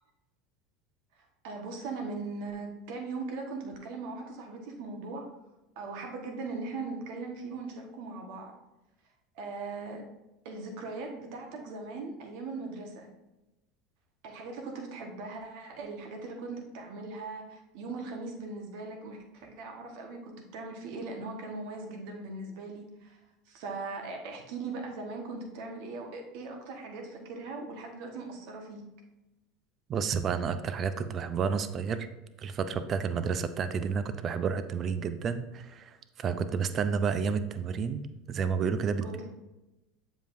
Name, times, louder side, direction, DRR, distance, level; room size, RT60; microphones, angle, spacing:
voice 1, 1.2-5.3 5.7-8.5 9.3-10.0 10.4-13.1 14.2-23.2 23.5-28.8 39.0-39.3, right 3 dB, 65° right, 2 dB, 1.3 m, -39 dB
voice 2, 29.9-32.1 32.4-39.0, right 6 dB, 40° right, 11 dB, 0.6 m, -30 dB
7.3 x 5.2 x 2.6 m, 0.98 s
hypercardioid pair, 90°, 0 cm